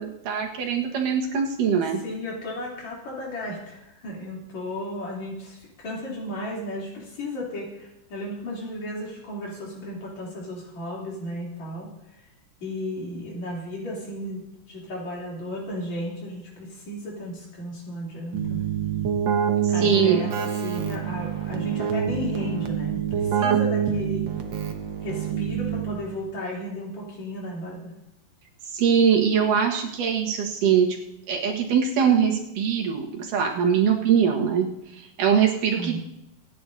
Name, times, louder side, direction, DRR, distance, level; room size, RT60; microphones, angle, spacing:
voice 1, 0.0-2.0 19.8-20.2 28.7-30.9 31.3-36.0, right 7 dB, 90° right, 0 dB, 3.2 m, -22 dB
voice 2, 2.0-11.9 12.6-18.7 19.7-24.2 25.0-27.9 35.8-36.0, left 1 dB, 60° left, -4 dB, 4.6 m, -34 dB
Keyboard (musical), 18.3-26.2, right 8 dB, 70° right, 1.1 m, -26 dB
25.5 x 9.8 x 2.8 m, 0.85 s
omnidirectional pair, 3.6 m